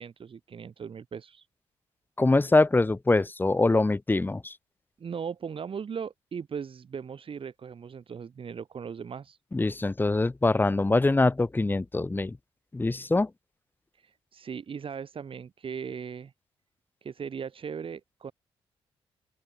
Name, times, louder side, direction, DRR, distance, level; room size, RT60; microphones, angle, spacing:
voice 1, 0.0-1.5 5.0-9.4 14.0-16.3 17.0-18.3, right 6 dB, 55° right, 6.9 m, -38 dB
voice 2, 2.2-4.5 9.5-12.4 12.7-13.3, left 2 dB, 20° left, 1.0 m, -24 dB
open air
cardioid pair, 70°, 11 cm